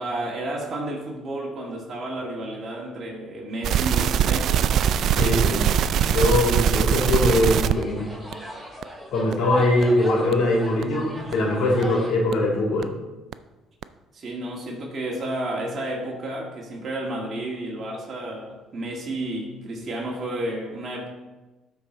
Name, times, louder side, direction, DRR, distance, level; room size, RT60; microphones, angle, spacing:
voice 1, 0.0-4.6 9.5-9.7 14.1-21.1, right 1 dB, 40° right, -2 dB, 2.1 m, -31 dB
sound 1, 3.6-7.8 8.3-8.4 8.8-8.9 9.3-9.4 9.8-9.9 10.3-10.4 10.8-10.9 11.3-11.4 11.8-11.9 12.3-12.4 12.8-12.9 13.3-13.4 13.8-13.9, right 9 dB, 65° right, 0.4 m, -21 dB
voice 2, 5.1-8.1 9.1-12.9, left 1 dB, 70° left, -2 dB, 2.9 m, -22 dB
sound 2, 6.9-12.1, equal, 10° right, 2.9 m, -38 dB
12.5 x 4.8 x 3.9 m, 1.1 s
supercardioid pair, 70°, 0 cm